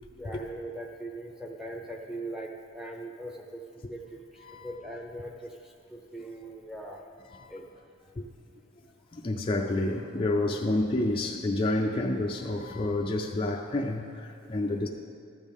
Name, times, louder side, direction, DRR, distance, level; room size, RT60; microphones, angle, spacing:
voice 1, 0.2-3.6 3.9-7.0 7.5-7.6, right 1 dB, 5° right, 0 dB, 0.8 m, -40 dB
voice 2, 9.1-14.9, left 2 dB, 25° left, 0 dB, 0.4 m, -29 dB
12.0 x 8.2 x 3.5 m, 2.4 s
head